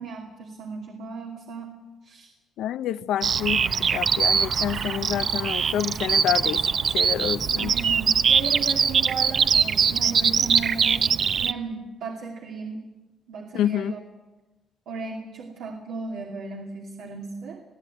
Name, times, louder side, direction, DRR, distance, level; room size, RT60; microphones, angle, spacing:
voice 1, 0.0-1.7 2.0-2.3 7.5-12.8 13.3-14.0 14.9-17.6, right 4 dB, 80° right, 2.6 m, -35 dB
voice 2, 2.6-7.7 13.5-13.9, left 11 dB, 85° left, 0.6 m, -28 dB
Bird vocalization bird call bird song, 3.2-11.5, right 6 dB, 55° right, 0.8 m, -22 dB
21.5 x 15.0 x 9.3 m
cardioid pair, 90°, 0 cm